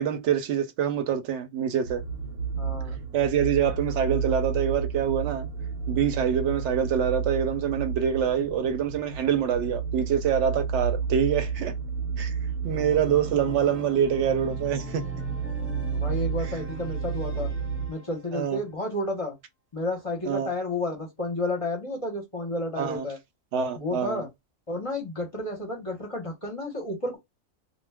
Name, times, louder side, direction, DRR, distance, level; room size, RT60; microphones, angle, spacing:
voice 1, 0.0-2.0 3.1-5.5 5.9-11.7 12.2-12.3 12.6-15.1 18.3-18.6 20.2-20.5 22.8-23.0 23.5-24.3, right 8 dB, 65° right, 0.8 m, -25 dB
sound 1, 1.8-17.9, right 6 dB, 90° right, 1.1 m, -32 dB
voice 2, 2.6-3.0 15.6-17.5 17.9-19.4 19.7-23.2 23.8-24.3 24.7-27.2, left 2 dB, 30° left, 0.7 m, -31 dB
Organ, 12.7-18.4, right 1 dB, 10° right, 0.9 m, -41 dB
2.3 x 2.2 x 3.3 m
omnidirectional pair, 1.4 m